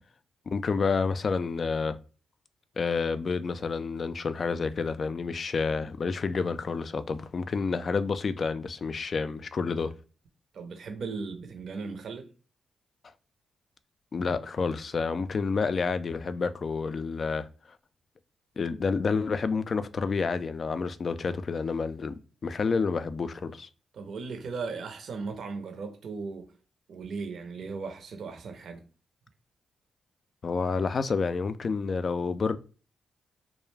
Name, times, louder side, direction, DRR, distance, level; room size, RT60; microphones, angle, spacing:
voice 1, 0.5-2.0 2.8-9.9 14.1-17.5 18.6-23.7 30.4-32.6, left 4 dB, 55° left, 0.3 m, -29 dB
voice 2, 10.5-12.3 23.9-26.5 26.9-28.8, right 4 dB, 70° right, 0.5 m, -37 dB
2.4 x 2.1 x 3.2 m
supercardioid pair, 45°, 0 cm